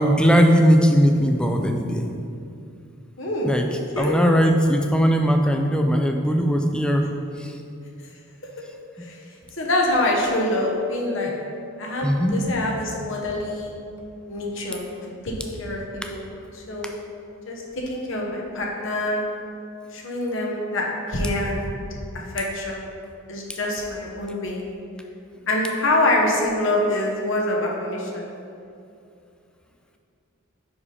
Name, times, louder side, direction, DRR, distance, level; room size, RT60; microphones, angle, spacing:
voice 1, 0.0-2.1 3.4-3.7 4.0-7.1 7.4-7.6 12.0-12.4 16.0-16.1 16.8-16.9 23.5-23.6, equal, 5° left, 4 dB, 0.3 m, -19 dB
voice 2, 3.2-4.2 9.0-9.2 9.6-11.3 11.8-13.7 14.3-15.8 16.1-16.3 16.5-16.9 17.5-19.2 19.9-21.8 22.1-22.8 23.3-24.6 25.5-28.3, left 1 dB, 60° left, -1 dB, 1.0 m, -25 dB
5.5 x 4.8 x 4.9 m, 2.5 s
head